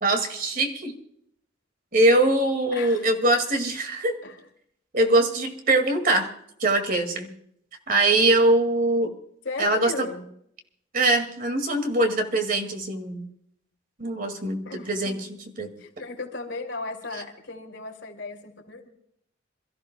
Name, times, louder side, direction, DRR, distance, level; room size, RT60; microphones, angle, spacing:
voice 1, 0.0-0.9 1.9-4.2 4.9-6.3 6.6-7.3 7.9-9.1 9.6-10.1 10.9-13.3 14.0-14.6 14.9-15.8, right 2 dB, 45° right, 6 dB, 2.2 m, -22 dB
voice 2, 2.7-3.3 4.2-4.4 9.4-10.3 14.6-15.3 15.8-18.9, left 3 dB, 65° left, 3 dB, 2.7 m, -36 dB
27.5 x 14.5 x 2.3 m, 0.71 s
head